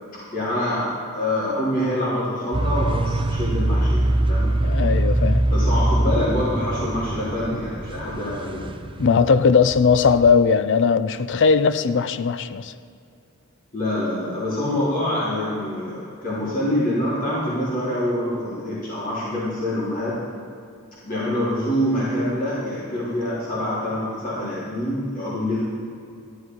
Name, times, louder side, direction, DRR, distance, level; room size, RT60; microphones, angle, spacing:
voice 1, 0.3-4.5 5.5-8.7 13.7-20.1 21.0-25.6, left 1 dB, 40° left, 3.5 m, -25 dB
sound 1, 2.5-10.3, right 1 dB, 25° right, 0.6 m, -23 dB
voice 2, 4.6-5.4 9.0-12.7, left 5 dB, 60° left, 0.5 m, -18 dB
14.5 x 11.5 x 4.7 m
head